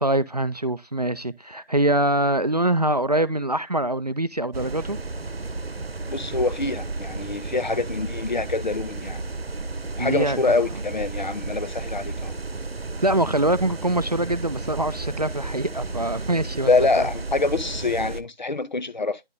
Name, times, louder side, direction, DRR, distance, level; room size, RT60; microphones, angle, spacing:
voice 1, 0.0-5.0 10.0-10.4 13.0-16.7 17.0-17.1, right 1 dB, 45° right, 0.4 m, -24 dB
sound 1, 4.5-18.2, right 3 dB, 85° right, 0.9 m, -33 dB
voice 2, 6.1-9.2 10.0-12.3 16.7-19.2, left 3 dB, 50° left, 0.7 m, -25 dB
11.0 x 3.8 x 3.6 m
figure-of-eight pair, 160°, 30 cm